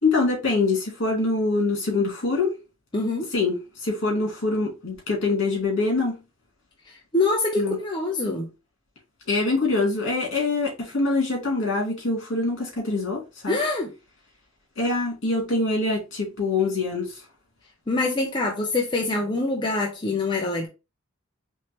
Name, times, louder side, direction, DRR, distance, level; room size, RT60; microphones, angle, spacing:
voice 1, 0.0-2.5 3.3-6.2 7.6-7.8 9.3-13.6 14.8-17.1, left 3 dB, 60° left, 2.5 m, -24 dB
voice 2, 2.9-3.3 6.9-8.5 13.5-13.9 17.9-20.7, left 2 dB, 20° left, 0.7 m, -25 dB
4.5 x 3.3 x 3.0 m
head